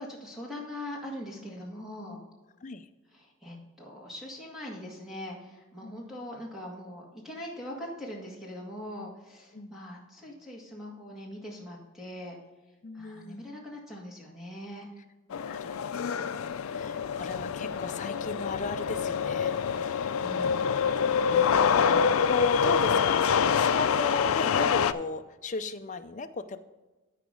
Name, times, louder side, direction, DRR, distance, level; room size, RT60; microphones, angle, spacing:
voice 1, 0.0-2.2 3.1-12.4 12.9-14.9 20.2-20.7, left 1 dB, ahead, -3 dB, 1.8 m, -42 dB
voice 2, 12.8-13.5 15.5-20.1 21.2-26.6, left 3 dB, 35° left, 8 dB, 0.5 m, -36 dB
sound 1, 15.3-24.9, left 6 dB, 85° left, 0.4 m, -26 dB
14.0 x 5.0 x 3.7 m, 1.2 s
head